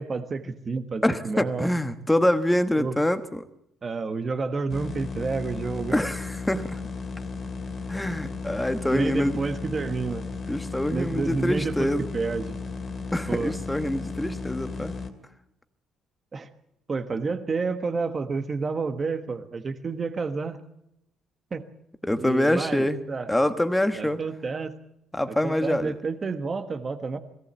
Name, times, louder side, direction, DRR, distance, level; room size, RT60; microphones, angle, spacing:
voice 1, 0.0-1.7 2.8-3.0 3.8-6.0 8.9-10.3 10.9-12.6 13.3-13.6 16.3-16.5 16.9-20.6 21.5-21.6 22.2-23.3 24.0-24.7 25.3-27.2, right 4 dB, 25° right, 8 dB, 1.3 m, -30 dB
voice 2, 1.0-3.5 5.9-6.8 7.9-9.4 10.5-12.1 13.1-14.9 22.0-23.0 23.3-24.2 25.1-25.9, left 1 dB, 5° left, 10 dB, 1.2 m, -25 dB
sound 1, 4.7-15.1, left 4 dB, 30° left, 2.4 m, -35 dB
22.0 x 17.5 x 8.2 m, 0.80 s
cardioid pair, 160°, 0 cm